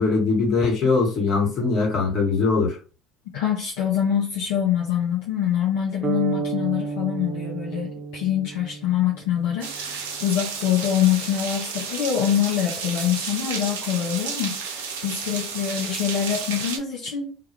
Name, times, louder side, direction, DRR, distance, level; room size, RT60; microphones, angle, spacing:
voice 1, 0.0-2.8, left 4 dB, 55° left, 1.1 m, -21 dB
voice 2, 3.3-17.4, left 10 dB, 70° left, 0.5 m, -25 dB
sound 1, 6.0-10.0, right 5 dB, 35° right, 0.6 m, -32 dB
sound 2, 9.6-16.8, right 6 dB, 80° right, 0.4 m, -32 dB
2.3 x 2.2 x 2.8 m
hypercardioid pair, 65°, 0 cm